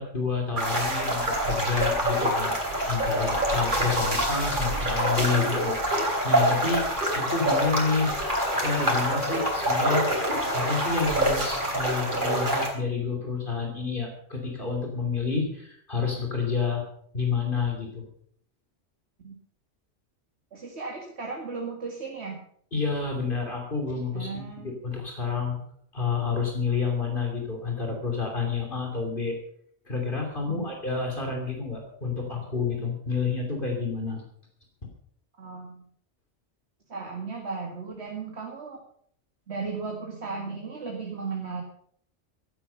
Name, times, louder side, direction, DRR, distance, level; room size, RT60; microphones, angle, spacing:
voice 1, 0.0-2.6 2.8-6.8 7.1-8.2 8.5-10.1 10.5-16.8 17.1-18.1 22.7-25.6 25.9-29.4 29.9-34.2, left 4 dB, 45° left, 1 dB, 3.3 m, -29 dB
sound 1, 0.6-12.7, right 1 dB, 40° right, 3.8 m, -26 dB
voice 2, 20.5-22.4 24.1-24.8 30.5-30.7 35.4-35.8 36.9-38.8 39.5-41.6, right 4 dB, 65° right, 0 dB, 2.4 m, -35 dB
16.0 x 11.5 x 5.7 m, 0.64 s
omnidirectional pair, 1.2 m